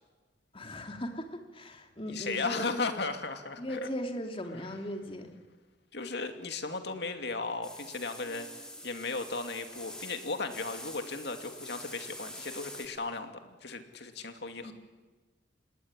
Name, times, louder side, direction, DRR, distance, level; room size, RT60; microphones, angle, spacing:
voice 1, 0.5-3.0 3.6-5.3 14.6-14.7, equal, 30° left, 5 dB, 2.8 m, -38 dB
voice 2, 2.1-3.8 4.5-4.8 5.9-14.7, left 3 dB, 65° left, 7 dB, 2.6 m, -36 dB
sound 1, 7.6-12.9, left 1 dB, 5° left, 4.0 m, -46 dB
26.5 x 20.5 x 9.8 m, 1.3 s
head